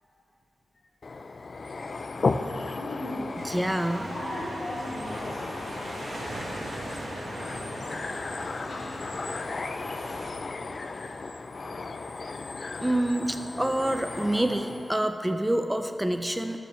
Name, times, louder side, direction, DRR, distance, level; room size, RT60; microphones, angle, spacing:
sound 1, 1.0-15.0, left 3 dB, 55° left, 0.4 m, -35 dB
voice 1, 2.7-3.4 4.0-5.4 8.1-9.0, left 1 dB, 90° left, -8 dB, 1.8 m, -37 dB
voice 2, 3.4-4.1 12.8-16.6, right 1 dB, 10° right, 7 dB, 0.4 m, -27 dB
sound 2, 3.4-10.3, right 1 dB, 85° right, 1.6 m, -39 dB
18.0 x 6.9 x 3.1 m, 2.7 s
wide cardioid pair, 100°, 0 cm